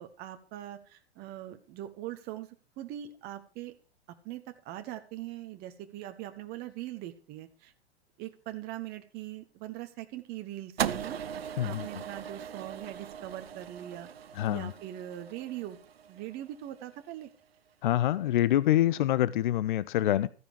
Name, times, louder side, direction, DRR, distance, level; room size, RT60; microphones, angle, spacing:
voice 1, 0.0-2.5 2.8-3.7 4.2-7.7 8.2-11.2 11.6-14.1 14.5-15.8 16.1-17.3, right 13 dB, 30° right, 1.2 m, -41 dB
sound 1, 10.8-17.1, right 8 dB, 65° right, 0.8 m, -39 dB
voice 2, 11.6-11.9 14.4-14.7 17.8-20.3, left 13 dB, 50° left, 0.6 m, -26 dB
14.0 x 10.5 x 4.8 m
figure-of-eight pair, 100°, 32 cm